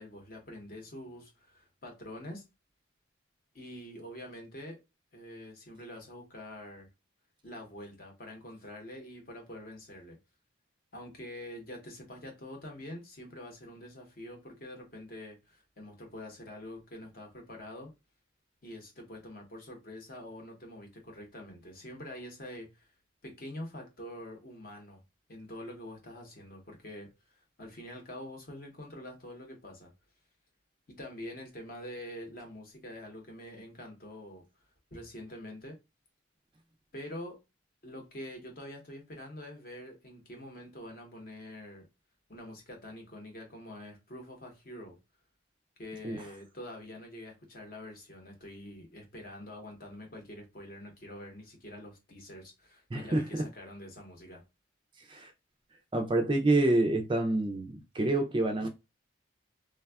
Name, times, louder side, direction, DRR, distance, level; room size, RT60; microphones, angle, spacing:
voice 1, 0.0-2.4 3.5-4.8 5.1-6.9 7.4-10.2 10.9-17.9 18.6-22.9 23.2-25.0 25.3-27.1 27.6-29.9 30.9-34.4 34.9-35.8 36.9-37.4 37.8-41.9 42.3-45.0 45.8-54.4, left 1 dB, 45° left, 0.8 m, -45 dB
voice 2, 52.9-53.5 55.1-55.3 55.9-58.7, right 2 dB, 25° right, 0.3 m, -27 dB
3.3 x 2.3 x 2.2 m
head